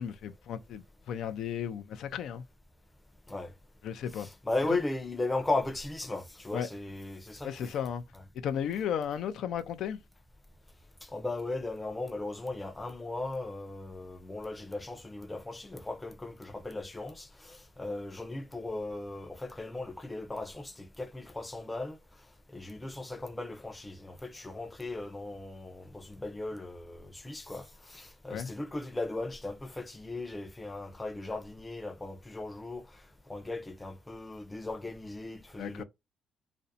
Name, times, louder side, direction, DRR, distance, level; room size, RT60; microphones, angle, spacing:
voice 1, 0.0-2.4 3.8-4.3 6.5-6.7 7.4-8.0 8.4-10.0 28.3-28.5 35.6-35.8, left 8 dB, 75° left, 0.4 m, -34 dB
voice 2, 4.1-7.7 11.1-22.0 22.5-32.9 33.3-35.8, left 2 dB, 15° left, 0.5 m, -37 dB
2.5 x 2.1 x 2.6 m
cardioid pair, 90°, 0 cm